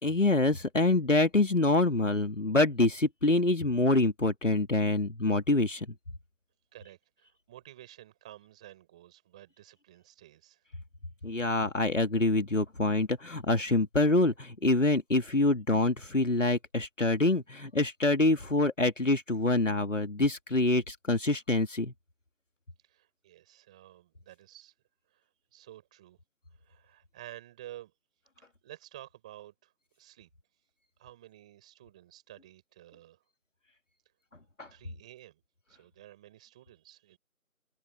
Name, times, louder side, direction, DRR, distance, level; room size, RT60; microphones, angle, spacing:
voice 1, 0.0-5.9 11.2-21.9 34.6-34.7, left 2 dB, 55° left, 2.8 m, -26 dB
voice 2, 6.7-10.6 22.8-24.7 25.1-25.2 25.5-26.2 26.6-27.9 28.4-30.3 31.0-33.2 34.7-35.4 35.7-37.2, right 14 dB, 5° right, 5.7 m, -52 dB
figure-of-eight pair, 175°, 44 cm